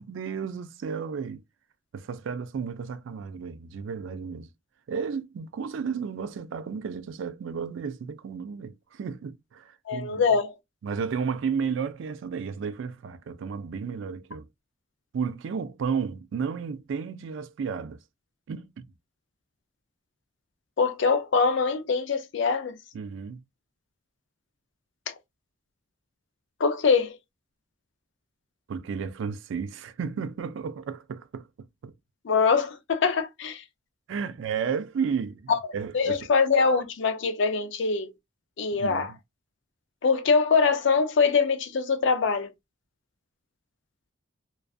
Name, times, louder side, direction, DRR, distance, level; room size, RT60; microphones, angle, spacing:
voice 1, 0.0-1.4 1.9-4.5 4.9-10.2 10.8-14.5 15.1-18.0 18.5-18.8 22.9-23.4 28.7-31.5 31.8-31.9 34.1-36.3 38.7-39.2, right 6 dB, 65° right, 0.3 m, -33 dB
voice 2, 9.9-10.5 20.8-22.7 25.1-25.2 26.6-27.2 32.2-33.6 35.5-35.6 35.9-38.1 38.6-39.1 40.0-42.5, left 5 dB, 60° left, 0.4 m, -23 dB
2.4 x 2.3 x 2.3 m
head